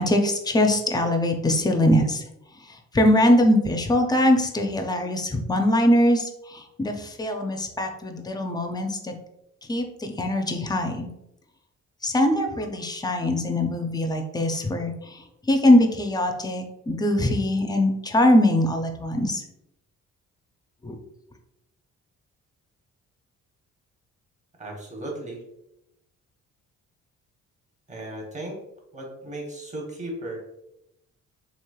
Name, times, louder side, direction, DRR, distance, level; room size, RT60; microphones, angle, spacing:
voice 1, 0.0-2.2 2.9-9.1 9.7-11.1 12.0-19.4 20.8-21.0, left 1 dB, 15° left, 5 dB, 0.4 m, -22 dB
voice 2, 24.6-25.4 27.9-28.6 28.9-30.4, right 1 dB, 25° right, -1 dB, 0.9 m, -35 dB
3.1 x 2.9 x 2.3 m, 0.84 s
cardioid pair, 90°, 30 cm